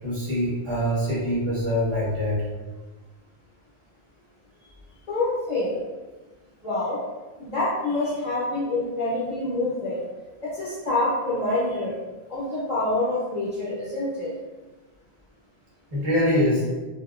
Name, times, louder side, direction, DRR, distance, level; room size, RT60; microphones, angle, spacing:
voice 1, 0.0-2.4 15.9-16.6, equal, 30° right, -8 dB, 1.0 m, -24 dB
voice 2, 5.1-5.8 6.6-7.0 7.4-10.0 10.4-11.9 12.3-14.3, left 2 dB, 45° left, -8 dB, 0.8 m, -26 dB
2.7 x 2.7 x 2.4 m, 1.2 s
omnidirectional pair, 1.1 m